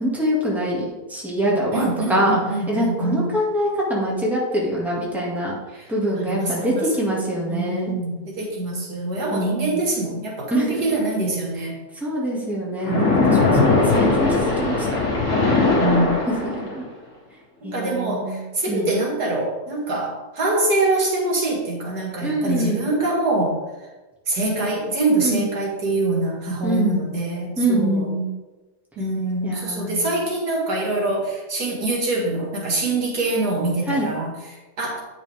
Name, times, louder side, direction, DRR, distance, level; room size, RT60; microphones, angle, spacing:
voice 1, 0.0-2.4 2.7-5.5 5.9-7.9 9.3-9.8 10.5-10.8 12.0-15.0 16.4-16.8 17.6-18.4 18.7-18.9 22.2-22.9 25.2-25.5 26.6-27.0 27.6-28.3 29.4-30.1 33.9-34.1, right 1 dB, ahead, -5 dB, 2.1 m, -24 dB
voice 2, 1.7-3.3 5.7-5.9 6.2-7.0 7.5-11.8 12.9-13.1 15.8-16.2 17.6-23.6 24.3-28.1 29.0-35.0, right 2 dB, 75° right, -3 dB, 2.5 m, -24 dB
Splash splatter, 12.8-16.9, left 3 dB, 70° left, 2.2 m, -19 dB
9.4 x 6.4 x 3.6 m, 1.2 s
omnidirectional pair, 1.7 m